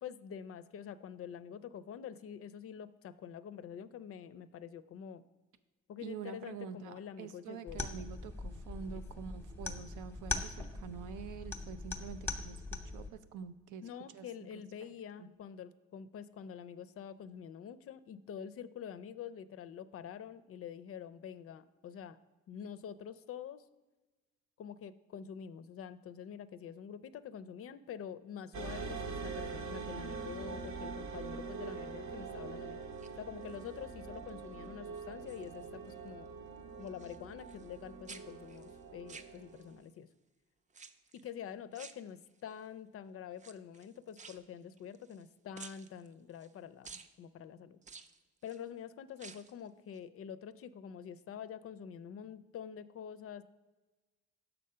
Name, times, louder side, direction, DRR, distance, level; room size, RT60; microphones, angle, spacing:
voice 1, 0.0-5.2 5.9-7.8 8.9-9.0 13.8-22.2 22.5-23.6 24.6-32.8 33.2-36.3 36.8-40.1 41.1-47.8 48.4-53.4, left 8 dB, 50° left, 12 dB, 0.4 m, -46 dB
voice 2, 6.0-13.9 14.1-14.6 15.2-15.3, right 7 dB, 90° right, 11 dB, 0.5 m, -46 dB
sound 1, 7.7-13.1, left 3 dB, 5° left, 0.7 m, -41 dB
sound 2, 28.5-39.8, right 4 dB, 70° right, 0.9 m, -44 dB
sound 3, 32.8-33.8 34.3-34.7 35.0-36.0 36.3-37.8 38.1-39.8 40.7-41.3 41.7-42.6 43.3-45.3 45.5-46.5 46.8-47.1 47.8-48.6 49.1-49.6 49.9-50.0, right 5 dB, 25° right, 0.4 m, -54 dB
6.5 x 4.0 x 5.5 m, 1.2 s
cardioid pair, 90°, 30 cm